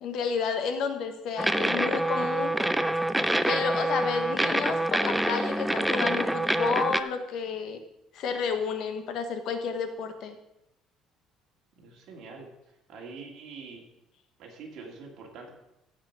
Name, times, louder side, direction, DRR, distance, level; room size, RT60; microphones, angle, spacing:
voice 1, 0.0-2.5 3.4-7.8 8.1-10.4, left 5 dB, 55° left, 7 dB, 1.1 m, -31 dB
sound 1, 1.4-7.0, right 1 dB, 5° right, 0.4 m, -26 dB
voice 2, 11.8-12.5 12.9-13.8 14.4-15.5, right 4 dB, 50° right, 0 dB, 2.6 m, -44 dB
15.5 x 5.1 x 6.1 m, 0.87 s
cardioid pair, 170°, 0 cm